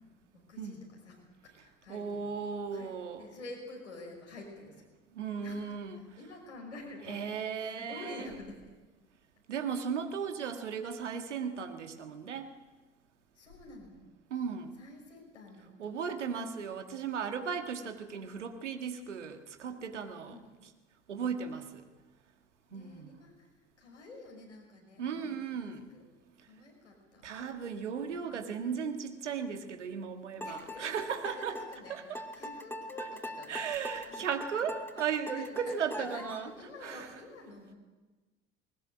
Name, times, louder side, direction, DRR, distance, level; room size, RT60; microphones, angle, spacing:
voice 1, 0.3-2.2 2.7-4.9 5.4-7.3 7.6-8.8 13.3-14.0 14.8-15.9 17.7-17.9 20.3-20.5 22.7-26.1 26.4-27.3 28.1-28.4 30.4-30.9 31.2-34.3 35.0-37.7, left 2 dB, 85° left, -1 dB, 5.9 m, -49 dB
voice 2, 1.9-3.3 5.1-6.0 7.1-8.3 9.5-12.5 14.3-14.8 15.8-20.4 21.1-21.8 22.7-23.1 25.0-25.9 27.2-31.6 31.9-32.2 33.5-36.5 36.8-37.1, right 6 dB, 80° right, 7 dB, 1.8 m, -36 dB
sound 1, 30.4-36.5, equal, 5° left, 2.9 m, -42 dB
20.5 x 19.5 x 8.0 m, 1.2 s
figure-of-eight pair, 60°, 35 cm